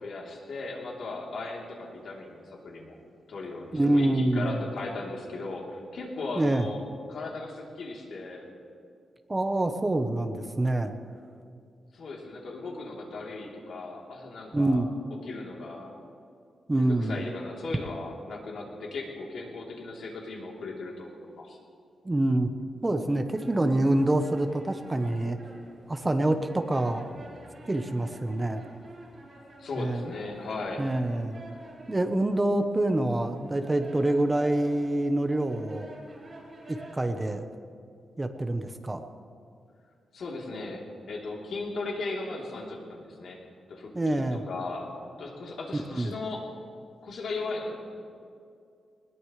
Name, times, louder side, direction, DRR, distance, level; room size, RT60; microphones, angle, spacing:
voice 1, 0.0-3.0 3.3-6.8 7.1-8.5 11.9-14.9 15.2-15.9 16.7-21.6 29.6-30.8 40.1-43.4 43.7-44.9 45.2-46.4 47.0-47.8, left 3 dB, 70° left, -2 dB, 3.5 m, -37 dB
voice 2, 3.7-4.6 6.4-6.7 9.3-10.9 14.5-14.9 16.7-17.2 22.0-22.5 22.8-25.4 25.9-27.1 27.7-28.6 29.8-30.0 30.8-31.4 31.9-35.9 36.7-37.4 38.2-39.0 43.9-44.4 45.7-46.1, right 1 dB, 20° right, 7 dB, 1.0 m, -26 dB
sound 1, 23.2-37.2, right 2 dB, 35° right, 5.2 m, -50 dB
21.0 x 20.5 x 3.3 m, 2.4 s
wide cardioid pair, 125°, 0 cm